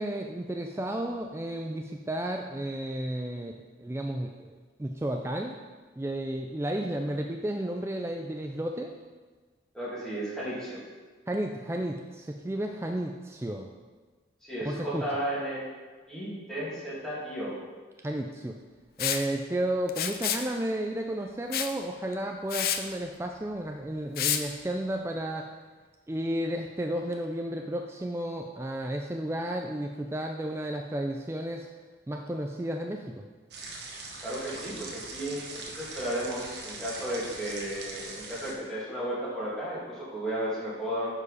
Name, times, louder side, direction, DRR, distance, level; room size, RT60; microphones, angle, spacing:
voice 1, 0.0-5.6 6.0-8.9 11.3-13.7 14.6-15.1 18.0-18.6 19.0-25.5 26.1-31.7 32.1-33.2, right 1 dB, 15° right, 3 dB, 0.3 m, -32 dB
voice 2, 9.7-10.8 14.4-15.6 16.1-17.6 34.2-41.1, right 1 dB, 5° left, -9 dB, 2.5 m, -34 dB
Liquid, 19.0-19.2 19.9-20.5 21.5-21.7 22.1-22.2 22.5-22.8 24.2-24.4, left 9 dB, 55° left, 0.5 m, -28 dB
sound 1, 33.5-38.5, right 3 dB, 65° right, 1.1 m, -41 dB
9.7 x 4.7 x 5.0 m, 1.4 s
head